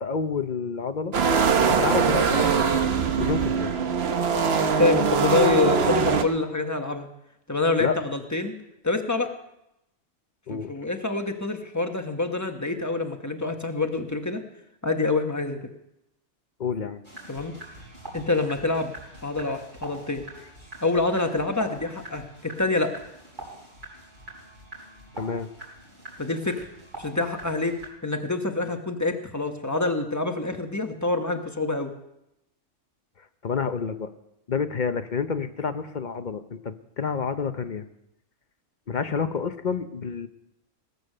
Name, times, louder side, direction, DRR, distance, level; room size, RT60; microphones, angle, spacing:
voice 1, 0.0-1.1 1.6-2.5 3.2-3.7 7.8-8.0 10.5-10.7 16.6-17.0 25.1-25.5 33.4-34.1 34.5-37.8 38.9-40.3, left 5 dB, 45° left, 10 dB, 0.7 m, -29 dB
sound 1, 1.1-6.2, right 6 dB, 55° right, 1.1 m, -22 dB
voice 2, 4.8-7.1 7.5-8.6 8.8-9.3 10.5-14.4 14.8-15.7 17.3-17.5 18.1-18.9 19.2-20.2 20.8-22.9 26.2-26.6 27.0-27.7 28.0-31.9, left 3 dB, 15° left, 5 dB, 1.1 m, -26 dB
sound 2, 17.0-27.9, right 1 dB, 40° right, 4.5 m, -44 dB
19.0 x 8.1 x 6.6 m, 0.85 s
omnidirectional pair, 1.3 m